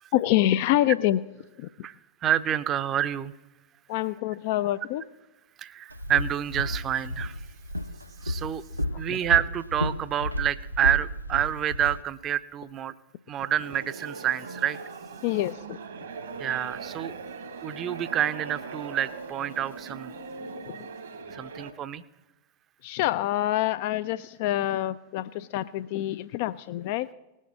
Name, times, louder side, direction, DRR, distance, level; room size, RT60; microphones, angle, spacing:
voice 1, 0.1-1.2 3.9-5.0 15.2-15.8 22.8-27.1, left 14 dB, 50° left, 14 dB, 0.4 m, -26 dB
voice 2, 2.2-3.3 5.6-7.4 8.2-8.6 9.0-12.9 13.3-14.8 16.4-17.1 17.6-20.1 21.3-22.0, right 10 dB, 30° right, 14 dB, 0.6 m, -28 dB
Walk footsteps, 5.9-12.0, left 1 dB, 90° right, 0.5 m, -32 dB
sound 1, 13.6-21.7, right 4 dB, 65° right, 1.4 m, -40 dB
18.5 x 6.4 x 7.4 m, 1.0 s
figure-of-eight pair, 90°, 0 cm